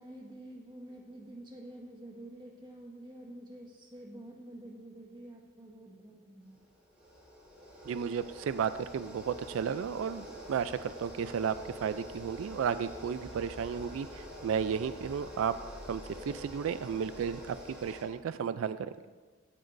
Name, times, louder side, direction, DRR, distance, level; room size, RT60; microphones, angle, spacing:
voice 1, 0.0-6.6, right 1 dB, 20° right, -2 dB, 1.5 m, -48 dB
sound 1, 6.4-18.0, equal, 5° right, 3.5 m, -46 dB
voice 2, 7.9-11.5 11.8-18.9, right 7 dB, 90° right, 13 dB, 0.3 m, -33 dB
16.0 x 9.1 x 2.6 m, 1.4 s
head